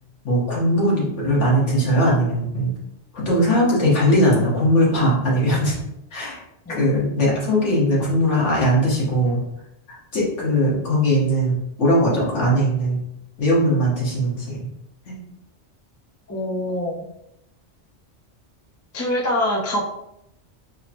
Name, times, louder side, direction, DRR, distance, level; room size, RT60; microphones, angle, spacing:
voice 1, 0.2-2.7 3.1-5.8 6.1-6.4 6.7-9.4 9.9-13.0 13.4-14.7 15.1-15.2, equal, 80° left, -5 dB, 1.5 m, -20 dB
voice 2, 16.3-17.0 18.9-19.8, left 1 dB, 20° left, -3 dB, 0.4 m, -24 dB
4.8 x 2.1 x 2.8 m, 0.80 s
omnidirectional pair, 1.2 m